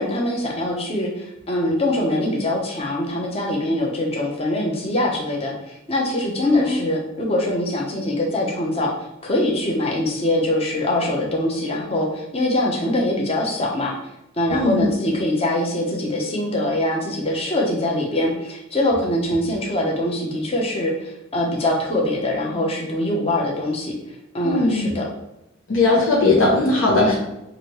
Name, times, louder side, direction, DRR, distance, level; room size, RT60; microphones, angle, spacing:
voice 1, 0.0-8.9 9.2-13.9 14.3-24.0 24.3-25.1 27.0-27.2, left 1 dB, 30° left, -1 dB, 0.8 m, -23 dB
voice 2, 14.5-14.9 24.4-24.9 25.7-27.2, left 2 dB, 75° left, -3 dB, 1.0 m, -18 dB
6.0 x 2.6 x 3.1 m, 0.88 s
head